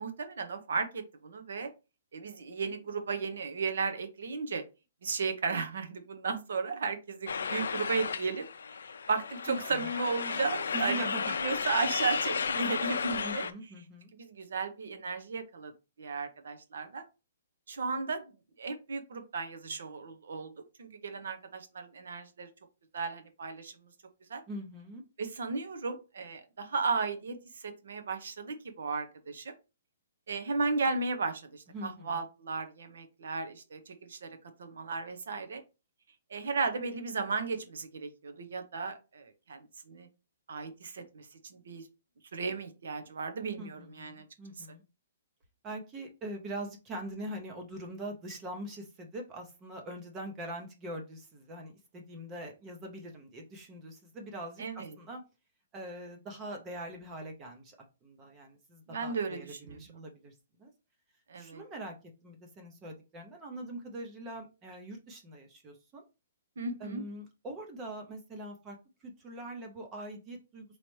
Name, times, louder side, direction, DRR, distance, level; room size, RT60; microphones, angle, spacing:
voice 1, 0.0-1.7 2.1-4.6 5.0-8.5 9.1-13.5 14.1-15.7 16.0-17.0 17.7-18.3 18.6-20.5 20.8-22.5 22.9-23.7 24.3-24.4 25.2-29.5 30.3-35.6 36.3-40.1 40.5-41.9 42.3-44.2 44.6-44.7 54.6-54.9 58.9-60.0 61.3-61.6 66.6-67.0, right 4 dB, 70° right, 7 dB, 0.9 m, -35 dB
sound 1, 7.3-13.5, left 6 dB, 90° left, 0.4 m, -33 dB
voice 2, 9.5-9.9 10.7-11.3 13.2-14.1 24.5-25.0 31.7-32.2 43.6-44.8 45.6-55.2 55.7-57.8 58.0-60.7 61.4-61.9 62.2-66.0 66.8-70.8, right 1 dB, 15° right, 3 dB, 0.5 m, -43 dB
4.1 x 3.1 x 3.1 m, 0.29 s
hypercardioid pair, 175°, 0 cm